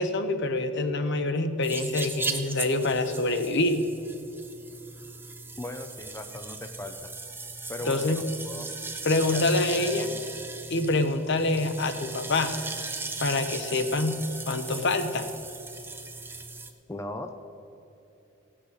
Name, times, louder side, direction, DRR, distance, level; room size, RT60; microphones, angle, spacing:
voice 1, 0.0-3.8 7.9-8.2 9.0-10.1 10.7-12.5 13.2-14.2 14.5-15.3, left 2 dB, 60° left, 8 dB, 0.9 m, -26 dB
sound 1, 1.6-16.7, right 3 dB, 10° right, 0.8 m, -38 dB
voice 2, 5.6-7.1 7.7-8.7 9.3-9.4 9.8-9.9 16.9-17.3, left 1 dB, 15° left, 6 dB, 0.5 m, -38 dB
16.5 x 6.2 x 8.1 m, 2.8 s
head